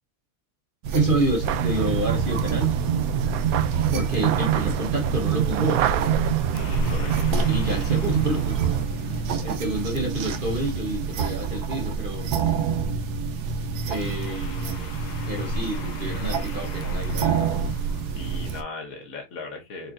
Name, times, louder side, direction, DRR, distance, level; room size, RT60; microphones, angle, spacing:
sound 1, 0.8-18.6, right 5 dB, 90° right, 1.3 m, -28 dB
voice 1, 0.9-2.8 3.9-5.8 7.5-8.7 9.0-12.3 13.9-14.9 15.3-17.5, right 1 dB, 35° right, 1.2 m, -28 dB
sound 2, 1.4-8.9, right 10 dB, 70° right, 1.0 m, -25 dB
sound 3, 6.5-9.9 13.9-18.7, left 7 dB, 85° left, 1.4 m, -44 dB
voice 2, 6.5-7.3 9.1-9.4 18.1-19.9, left 3 dB, 60° left, 1.7 m, -38 dB
4.7 x 4.3 x 2.5 m
omnidirectional pair, 1.7 m